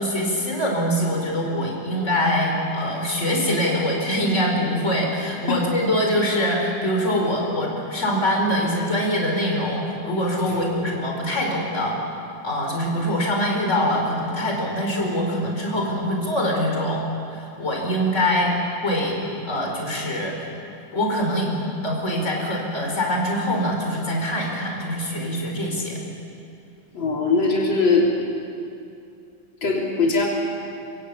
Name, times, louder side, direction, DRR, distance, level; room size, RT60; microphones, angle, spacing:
voice 1, 0.0-12.0 12.4-17.0 17.3-18.5 18.8-19.2 19.4-20.5 20.9-21.5 21.8-26.0, equal, 35° left, 0 dB, 5.2 m, -24 dB
voice 2, 26.9-28.1 29.6-30.2, left 4 dB, 80° left, -3 dB, 4.1 m, -20 dB
25.5 x 24.0 x 8.6 m, 2.6 s
omnidirectional pair, 2.1 m